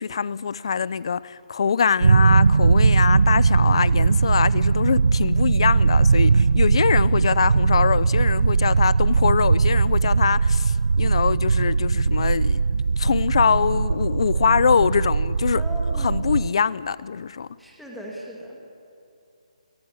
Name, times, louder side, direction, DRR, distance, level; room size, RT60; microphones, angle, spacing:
voice 1, 0.0-12.6 13.0-15.6 16.0-17.5, left 6 dB, 45° left, 0.6 m, -23 dB
sound 1, 2.0-16.5, right 4 dB, 85° right, 0.5 m, -19 dB
voice 2, 15.5-16.2 17.6-18.6, equal, ahead, 1.9 m, -37 dB
23.0 x 21.0 x 9.6 m
hypercardioid pair, 175°, 4 cm